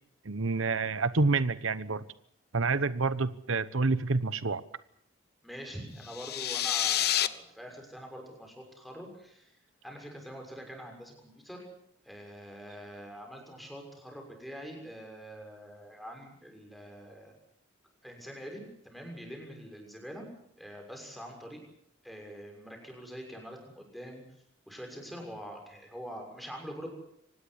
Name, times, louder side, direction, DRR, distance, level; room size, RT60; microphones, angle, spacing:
voice 1, 0.2-2.0 2.5-4.6, right 3 dB, 80° right, 15 dB, 1.0 m, -28 dB
voice 2, 5.4-9.5 9.8-11.6 12.0-17.3 18.0-20.3 20.6-21.6 22.0-24.2 24.7-26.9, equal, ahead, 2 dB, 6.6 m, -44 dB
sound 1, 6.0-7.3, left 12 dB, 50° left, 1.0 m, -28 dB
25.0 x 19.0 x 8.2 m, 0.70 s
head